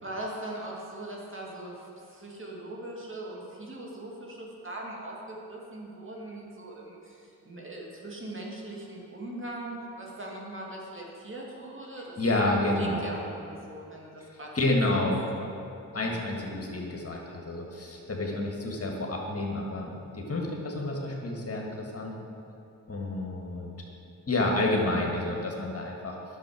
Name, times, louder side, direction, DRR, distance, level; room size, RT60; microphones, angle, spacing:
voice 1, 0.0-12.2 12.4-15.0 16.0-16.3, right 1 dB, 30° right, -3 dB, 2.3 m, -40 dB
voice 2, 12.2-13.1 14.5-15.2 15.9-22.2 22.9-23.7 24.3-26.2, left 2 dB, 35° left, -1 dB, 1.8 m, -29 dB
10.5 x 6.9 x 4.9 m, 2.7 s
supercardioid pair, 45°, 41 cm